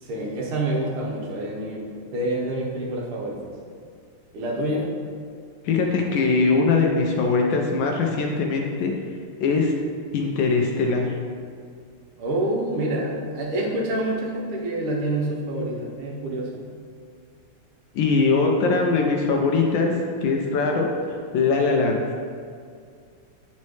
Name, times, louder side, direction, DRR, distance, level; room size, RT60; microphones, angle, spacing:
voice 1, 0.0-3.4 4.3-4.8 12.2-16.5, right 1 dB, 80° right, -2 dB, 1.8 m, -27 dB
voice 2, 5.6-8.9 9.4-9.8 10.1-11.1 17.9-20.0 20.2-20.9 21.3-22.0, left 4 dB, 75° left, 1 dB, 1.2 m, -21 dB
8.2 x 4.2 x 3.1 m, 2.2 s
omnidirectional pair, 2.4 m